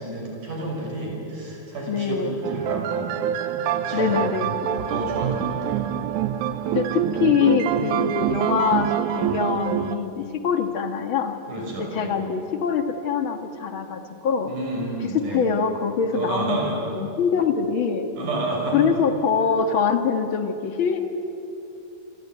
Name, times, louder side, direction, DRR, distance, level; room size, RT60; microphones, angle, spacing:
voice 1, 0.0-3.1 3.6-4.2 4.7-5.9 11.5-12.2 14.5-15.5 16.1-16.8 18.2-18.9, right 2 dB, 55° right, 0 dB, 7.3 m, -30 dB
voice 2, 1.9-2.3 3.9-4.8 6.7-11.4 11.8-14.5 15.1-18.1 18.7-21.0, left 6 dB, 55° left, 7 dB, 1.4 m, -24 dB
sound 1, 2.4-10.0, right 10 dB, 70° right, 2.0 m, -26 dB
27.5 x 23.0 x 9.4 m, 2.9 s
omnidirectional pair, 4.5 m